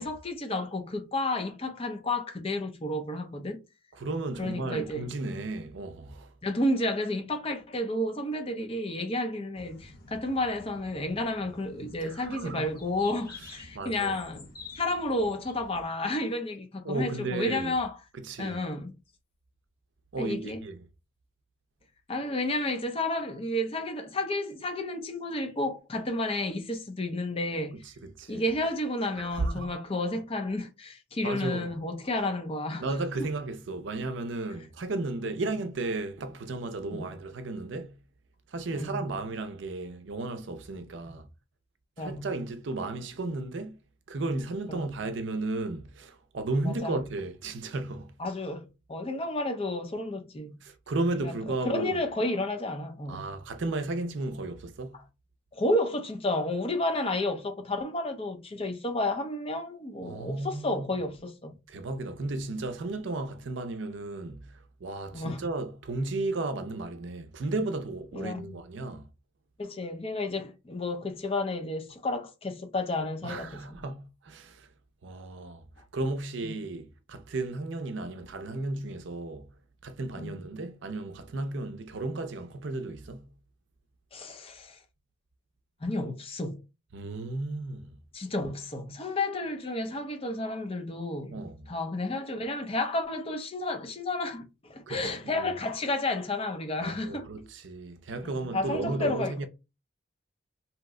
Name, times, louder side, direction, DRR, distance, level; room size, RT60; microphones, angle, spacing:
voice 1, 0.0-3.6 4.4-5.1 6.4-14.5 14.8-17.9 18.4-18.9 20.2-20.6 22.1-27.8 28.3-32.9 36.9-37.0 38.7-39.1 41.0-41.2 42.0-42.3 44.7-44.9 46.6-47.0 48.2-50.6 51.1-51.3 51.6-53.3 55.5-61.5 65.1-65.4 68.1-68.6 69.6-73.8 76.4-76.5 80.2-80.4 84.1-84.8 85.8-86.6 88.1-97.3 98.2-99.5, left 2 dB, 30° left, 0.5 m, -31 dB
voice 2, 3.9-6.3 12.0-12.7 13.7-14.2 16.8-17.7 18.1-18.6 20.1-20.9 27.7-28.4 29.2-29.8 31.2-31.7 32.8-38.0 38.5-41.3 42.0-43.8 44.1-48.1 50.6-52.0 53.1-55.0 60.0-60.9 61.7-69.1 73.2-74.7 75.0-75.6 75.9-79.5 79.8-83.3 86.9-88.0 91.3-91.7 94.9-95.0 95.2-95.5 96.8-99.5, right 2 dB, 65° right, 0.5 m, -34 dB
sound 1, 9.5-15.9, left 3 dB, 45° left, 1.0 m, -50 dB
2.8 x 2.1 x 3.6 m
head